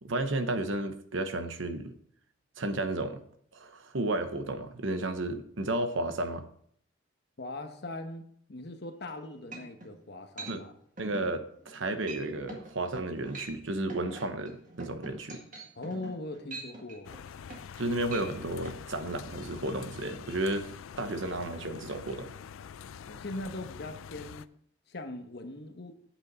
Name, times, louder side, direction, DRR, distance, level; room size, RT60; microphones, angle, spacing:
voice 1, 0.0-2.0 2.6-3.2 3.5-6.4 10.5-10.6 11.0-15.4 17.8-20.7 21.0-22.3, right 2 dB, 70° right, 8 dB, 0.9 m, -33 dB
voice 2, 7.4-8.2 8.5-10.7 15.8-17.2 23.0-24.5 24.9-26.0, left 2 dB, 55° left, 6 dB, 1.0 m, -40 dB
sound 1, 9.1-9.2 9.5-9.9 10.4-10.6 11.0-11.3 11.6-11.8 12.1-12.2 12.5-12.7 13.2-13.6 13.9-17.8 18.1-18.3 18.7-18.8, right 2 dB, 40° right, 1.9 m, -43 dB
sound 2, 17.0-24.5, left 7 dB, 85° left, 0.4 m, -45 dB
9.0 x 8.1 x 4.0 m, 0.64 s
head